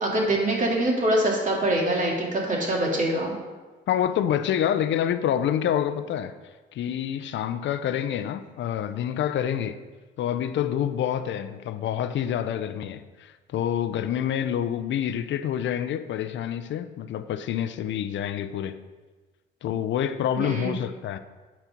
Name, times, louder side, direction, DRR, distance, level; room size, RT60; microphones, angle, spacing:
voice 1, 0.0-3.4 20.4-20.7, right 1 dB, 40° right, 2.4 m, -24 dB
voice 2, 3.9-6.3 6.7-9.8 10.2-18.8 19.6-21.2, left 10 dB, 70° left, 0.5 m, -27 dB
9.0 x 4.3 x 5.9 m
cardioid pair, 90°, 20 cm